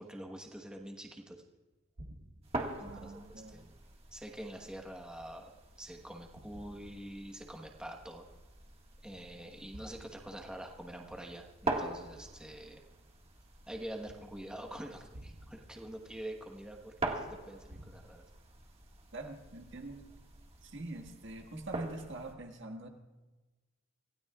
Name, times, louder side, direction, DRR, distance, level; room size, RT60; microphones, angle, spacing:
voice 1, 0.0-1.4 2.8-3.7 4.1-5.5 5.8-8.2 9.0-12.8 13.7-18.2, right 1 dB, 5° right, 1 dB, 1.2 m, -46 dB
sound 1, 1.7-5.8 6.4-7.7 8.2-8.3 9.5-13.1 13.7-17.9, right 1 dB, 75° right, 1.4 m, -56 dB
sound 2, 2.4-22.3, right 2 dB, 30° right, 1.7 m, -44 dB
voice 2, 2.8-3.6 19.1-20.0 20.6-22.9, right 2 dB, 60° right, 3 dB, 1.7 m, -44 dB
26.5 x 16.0 x 2.4 m, 1.2 s
head